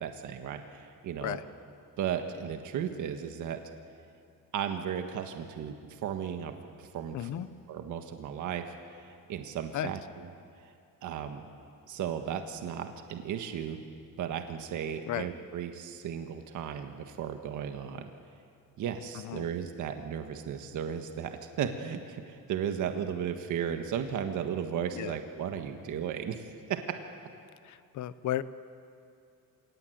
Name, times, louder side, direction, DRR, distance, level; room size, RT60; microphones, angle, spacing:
voice 1, 0.0-1.4 2.0-3.6 4.5-7.3 7.7-10.3 10.6-10.7 11.0-11.4 11.9-13.8 14.2-18.1 18.8-26.8, right 8 dB, 55° right, 6 dB, 1.6 m, -35 dB
voice 2, 7.1-7.5 9.7-9.9 15.1-15.3 19.1-19.5 24.9-25.1 27.6-28.4, left 12 dB, 55° left, 15 dB, 0.9 m, -34 dB
28.0 x 17.5 x 9.2 m, 2.4 s
cardioid pair, 175°, 35 cm